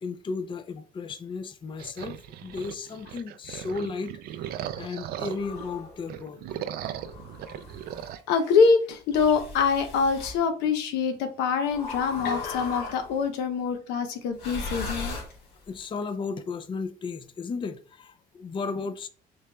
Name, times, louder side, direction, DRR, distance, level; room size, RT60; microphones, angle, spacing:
voice 1, 0.0-6.6 15.7-19.1, left 4 dB, 30° left, 0.5 m, -35 dB
sound 1, 1.8-5.7 6.0-8.2, right 11 dB, 65° right, 0.4 m, -38 dB
sound 2, 5.3-6.0 6.9-8.1 9.1-10.4 11.7-13.2 14.3-15.8, left 3 dB, 75° left, 2.2 m, -38 dB
voice 2, 8.3-15.2, left 5 dB, 90° left, 0.8 m, -24 dB
6.5 x 3.2 x 2.3 m
cardioid pair, 110°, 17 cm